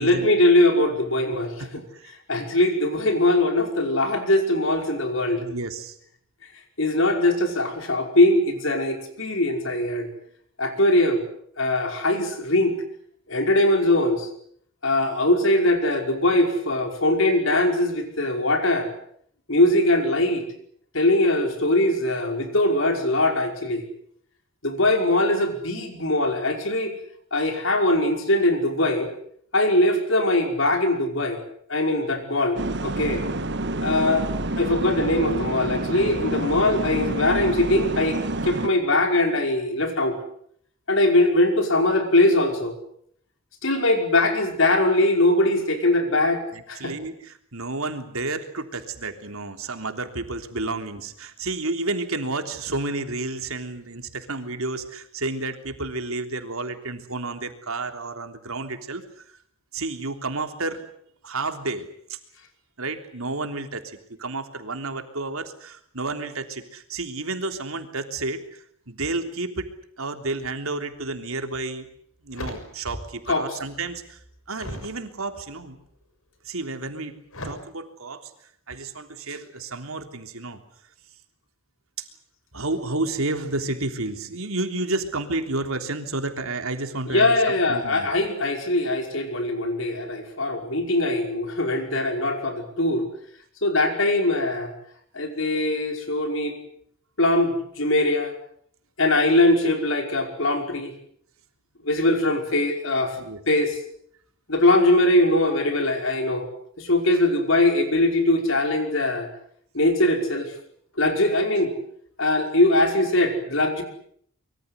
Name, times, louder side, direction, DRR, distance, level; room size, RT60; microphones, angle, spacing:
voice 1, 0.0-1.6 2.3-5.4 6.8-10.1 10.6-11.2 11.6-12.7 13.3-14.3 14.8-18.9 19.5-20.4 20.9-23.8 24.6-26.9 27.3-29.1 29.5-31.4 31.7-33.2 33.8-34.3 34.6-40.2 40.9-42.7 43.6-46.4 46.7-46.9 73.3-73.6 87.1-93.1 93.6-94.7 95.1-96.5 97.2-98.3 99.0-100.9 101.8-103.2 103.5-103.8 104.5-106.5 106.8-109.3 109.7-110.5 111.0-111.7 112.2-113.8, left 1 dB, 65° left, 5 dB, 5.3 m, -21 dB
voice 2, 5.3-5.9 46.5-59.0 59.7-60.9 61.2-62.2 62.8-69.7 70.0-71.9 72.2-74.2 74.5-75.8 76.4-77.2 77.4-78.3 78.7-80.6 82.0-82.1 82.5-87.3 87.7-88.1 103.1-103.4, right 2 dB, 80° right, 7 dB, 3.4 m, -31 dB
sound 1, 32.6-38.7, right 2 dB, 55° right, 1.5 m, -28 dB
sound 2, 71.3-71.5 71.9-73.3 73.6-75.0 75.6-76.0 77.3-77.5, left 1 dB, 80° left, 6.6 m, -38 dB
25.0 x 23.5 x 8.2 m, 0.65 s
head